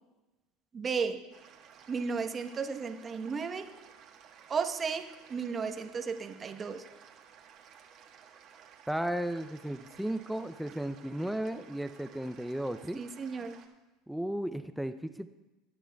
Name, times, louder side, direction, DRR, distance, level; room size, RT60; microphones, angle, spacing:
voice 1, 0.7-1.2 1.9-3.7 4.5-6.8 12.9-13.6, right 5 dB, 30° right, 6 dB, 1.0 m, -34 dB
sound 1, 1.3-13.7, right 8 dB, 55° right, 1.6 m, -56 dB
voice 2, 8.9-13.0 14.1-15.3, right 1 dB, ahead, 10 dB, 0.5 m, -34 dB
20.0 x 10.0 x 2.3 m, 1.1 s
supercardioid pair, 95°, 0 cm